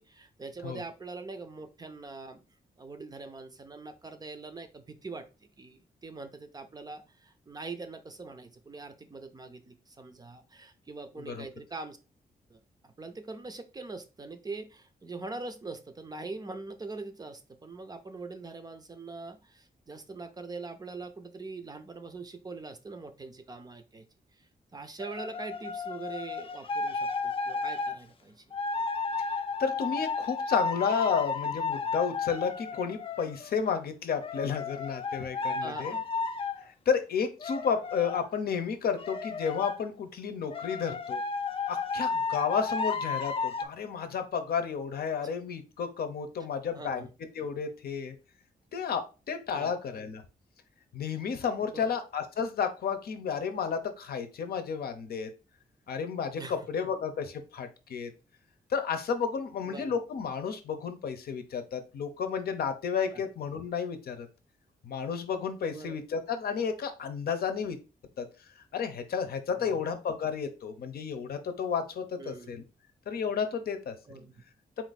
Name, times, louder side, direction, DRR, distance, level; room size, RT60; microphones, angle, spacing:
voice 1, 0.0-2.4 2.8-5.3 5.6-12.0 12.5-24.0 24.4-28.6 35.6-36.1 40.9-41.0 46.7-47.1 49.5-49.7 51.6-52.0 56.4-56.6 59.6-60.0 63.1-63.2 65.7-66.0 69.6-69.8 72.2-72.6 74.1-74.3, right 3 dB, 25° right, 8 dB, 0.5 m, -43 dB
sound 1, 25.0-28.0 28.5-33.5 34.2-36.6 37.4-38.3 39.0-39.8 40.5-43.7, left 4 dB, 35° left, 0.4 m, -33 dB
voice 2, 29.6-36.0 36.9-41.2 41.7-47.1 47.4-48.1 48.7-49.0 49.3-50.2 50.9-55.3 55.9-58.1 58.7-64.3 64.8-67.8 68.2-68.3 68.7-72.6 73.1-73.9, left 6 dB, 75° left, 7 dB, 0.7 m, -32 dB
4.2 x 2.5 x 4.0 m, 0.31 s
wide cardioid pair, 150°, 16 cm